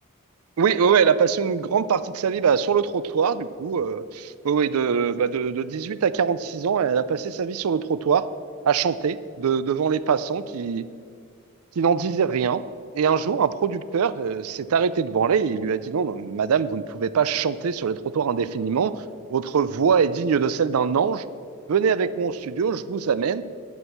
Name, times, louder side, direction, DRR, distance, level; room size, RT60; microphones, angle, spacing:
voice 1, 0.6-8.3 8.7-10.9 11.8-12.6 12.9-18.9 19.3-21.2 21.7-23.4, right 6 dB, 75° right, 16 dB, 0.4 m, -23 dB
11.0 x 6.3 x 7.0 m, 2.2 s
head